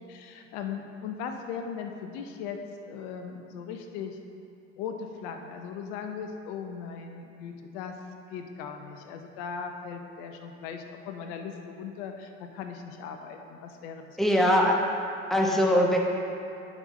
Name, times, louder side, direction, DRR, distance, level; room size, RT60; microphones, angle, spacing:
voice 1, 0.0-2.6 2.8-4.2 4.8-7.9 8.3-14.2, left 6 dB, 65° left, 5 dB, 0.8 m, -38 dB
voice 2, 14.2-14.8 15.3-16.0, equal, ahead, -1 dB, 1.1 m, -21 dB
11.0 x 5.2 x 3.2 m, 2.6 s
hypercardioid pair, 65°, 35 cm